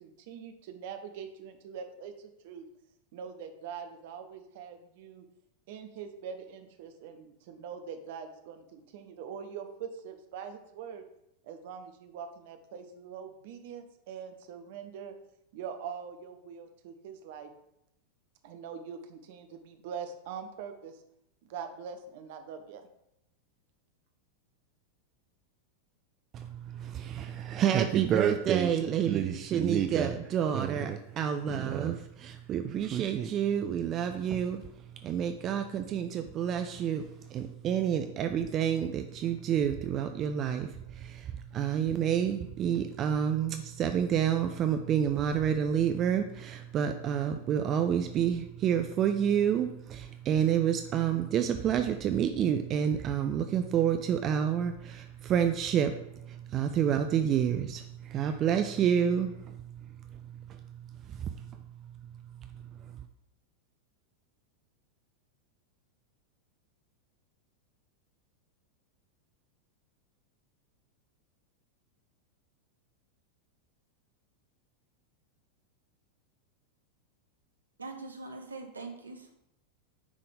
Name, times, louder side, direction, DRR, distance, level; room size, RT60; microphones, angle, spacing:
voice 1, 0.0-2.7 3.1-5.2 5.7-11.0 11.4-15.1 15.5-17.5 18.4-21.0 21.4-22.9, right 7 dB, 50° right, 7 dB, 0.8 m, -43 dB
voice 2, 26.3-34.6 35.0-37.0 37.3-59.6 60.5-60.6 61.1-61.4, right 9 dB, 30° right, 7 dB, 0.4 m, -29 dB
voice 3, 77.8-79.3, right 3 dB, 75° right, 4 dB, 0.8 m, -42 dB
9.6 x 3.8 x 3.4 m, 0.81 s
figure-of-eight pair, 90°, 0 cm